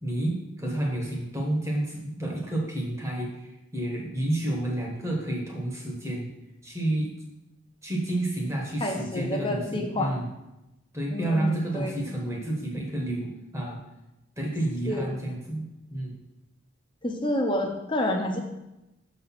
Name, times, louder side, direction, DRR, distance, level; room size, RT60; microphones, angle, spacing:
voice 1, 0.0-6.3 6.6-7.1 7.8-10.3 10.9-13.8 14.4-16.2, right 1 dB, 15° right, -1 dB, 1.2 m, -30 dB
voice 2, 8.8-10.1 11.1-11.9 14.9-15.1 17.0-18.4, left 1 dB, 25° left, 2 dB, 0.9 m, -28 dB
6.5 x 4.1 x 5.9 m, 0.95 s
head